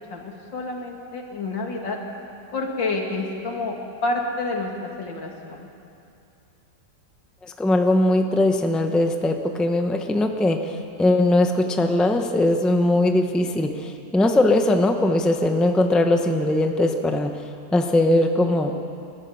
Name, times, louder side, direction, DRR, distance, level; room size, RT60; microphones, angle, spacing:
voice 1, 0.1-2.0 2.5-3.8 4.0-5.7, left 2 dB, 90° left, 1 dB, 3.0 m, -28 dB
voice 2, 7.6-17.3 17.7-18.7, left 1 dB, ahead, 5 dB, 0.7 m, -20 dB
29.0 x 13.0 x 7.1 m, 2.6 s
omnidirectional pair, 1.9 m